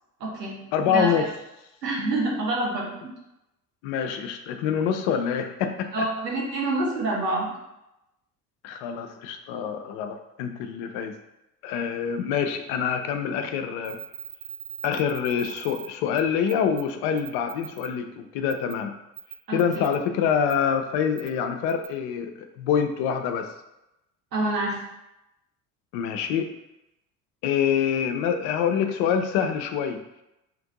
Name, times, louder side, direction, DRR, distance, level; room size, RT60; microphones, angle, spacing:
voice 1, 0.2-0.6 0.9-1.3 1.8-2.9 5.9-7.5 19.5-19.9 24.3-24.8, right 2 dB, 90° right, -2 dB, 0.8 m, -27 dB
voice 2, 0.7-1.3 3.8-5.9 8.6-11.1 11.6-14.0 14.8-18.9 19.5-23.5 25.9-26.5 27.4-30.0, left 7 dB, 55° left, 7 dB, 0.5 m, -26 dB
sound 1, 13.8-15.9 16.2-16.3 16.5-16.8 17.2-17.9 18.5-18.7 19.2-20.0 20.5-20.6 21.2-21.3 21.7-21.9, right 10 dB, 45° right, 0.6 m, -39 dB
2.9 x 2.5 x 3.8 m, 0.90 s
figure-of-eight pair, 60°, 48 cm